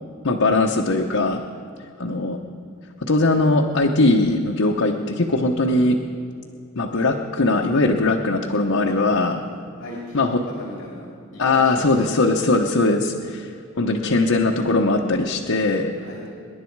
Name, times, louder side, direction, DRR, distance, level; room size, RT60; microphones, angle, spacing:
voice 1, 0.2-1.4 2.0-2.4 3.0-6.0 6.8-9.4 10.1-10.4 11.4-13.5 13.8-15.9, left 2 dB, 90° left, 1 dB, 1.0 m, -20 dB
voice 2, 9.8-11.1 11.3-12.2 16.0-16.3, left 1 dB, 65° left, -3 dB, 2.7 m, -36 dB
26.5 x 11.0 x 4.7 m, 2.5 s
head